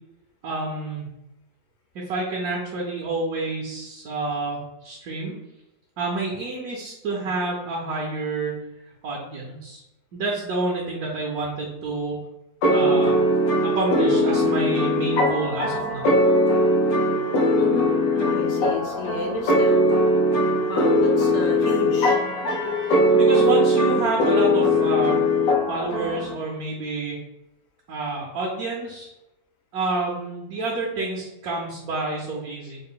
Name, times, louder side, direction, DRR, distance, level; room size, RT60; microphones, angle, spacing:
voice 1, 0.4-1.1 1.9-5.3 6.0-8.6 9.0-9.8 10.1-12.2 12.7-13.2 13.6-16.1 23.1-25.2 25.7-27.2 27.9-29.1 29.7-32.8, right 2 dB, 70° right, -2 dB, 1.2 m, -28 dB
sound 1, 12.6-26.3, equal, 90° left, 1.4 m, -20 dB
voice 2, 17.6-19.9 20.7-22.2, left 3 dB, 60° left, 0 dB, 1.0 m, -31 dB
3.9 x 2.1 x 3.6 m, 0.91 s
omnidirectional pair, 1.8 m